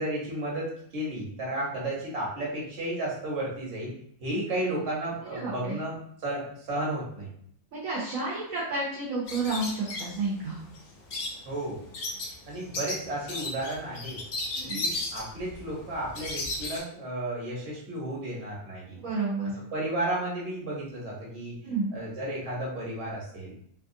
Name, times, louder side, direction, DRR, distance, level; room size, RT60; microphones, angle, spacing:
voice 1, 0.0-3.9 4.2-5.9 6.2-7.3 11.5-11.8 12.5-14.2 14.6-19.0 19.7-21.6 21.9-23.5, right 1 dB, 50° right, -5 dB, 1.2 m, -33 dB
voice 2, 5.3-5.8 7.7-10.6 14.6-14.8 19.0-19.5 21.6-21.9, right 3 dB, 70° right, -6 dB, 1.1 m, -31 dB
sound 1, 9.3-16.8, left 2 dB, 65° left, 0.5 m, -35 dB
2.9 x 2.3 x 2.6 m, 0.66 s
omnidirectional pair, 1.6 m